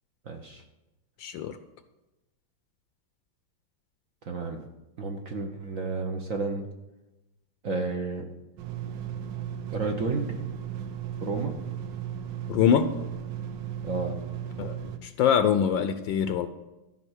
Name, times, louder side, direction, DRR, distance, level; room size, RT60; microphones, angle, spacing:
voice 1, 0.3-0.6 4.3-4.6 5.0-6.7 7.6-8.2 9.7-10.3 11.2-11.5 13.8-14.2, right 4 dB, 55° right, 3 dB, 1.0 m, -31 dB
voice 2, 1.2-1.6 12.5-12.9 14.6-16.5, left 8 dB, 75° left, 10 dB, 1.2 m, -24 dB
sound 1, 8.6-15.0, right 9 dB, 70° right, 1.3 m, -35 dB
13.0 x 5.6 x 6.3 m, 1.0 s
omnidirectional pair, 2.3 m